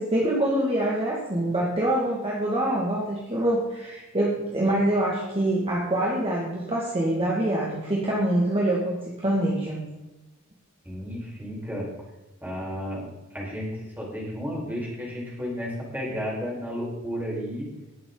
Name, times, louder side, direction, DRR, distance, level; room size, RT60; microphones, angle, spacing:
voice 1, 0.0-9.8, right 1 dB, 25° right, -4 dB, 2.2 m, -25 dB
voice 2, 10.8-12.0 12.4-17.7, equal, 10° right, -5 dB, 5.1 m, -33 dB
19.5 x 7.8 x 4.0 m, 1.0 s
head